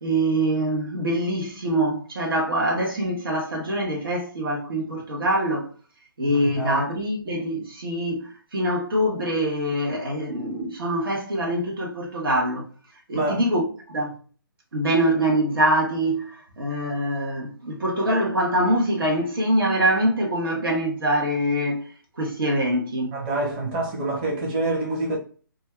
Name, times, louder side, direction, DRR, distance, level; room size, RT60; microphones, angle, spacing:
voice 1, 0.0-5.7 6.2-12.6 13.1-14.2 14.7-21.8 22.2-23.1, right 1 dB, 75° right, 1.1 m, -24 dB
voice 2, 6.3-6.9 13.1-13.4 23.1-25.2, right 2 dB, 25° right, 0.8 m, -26 dB
2.5 x 2.3 x 3.2 m
hypercardioid pair, 150°, 12 cm